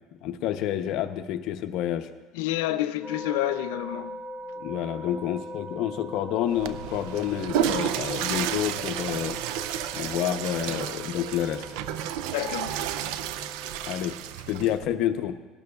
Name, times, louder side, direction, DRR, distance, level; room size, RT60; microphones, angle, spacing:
voice 1, 0.2-2.1 4.6-9.4 9.9-12.1 13.8-14.2 14.5-15.4, left 11 dB, 65° left, 0.8 m, -29 dB
voice 2, 2.3-4.2 12.3-12.8, left 14 dB, 90° left, 0.5 m, -29 dB
sound 1, 3.0-14.2, equal, 25° right, 1.6 m, -42 dB
Water / Toilet flush, 6.5-14.9, right 10 dB, 80° right, 0.4 m, -31 dB
17.5 x 12.0 x 2.4 m
supercardioid pair, 115°, 0 cm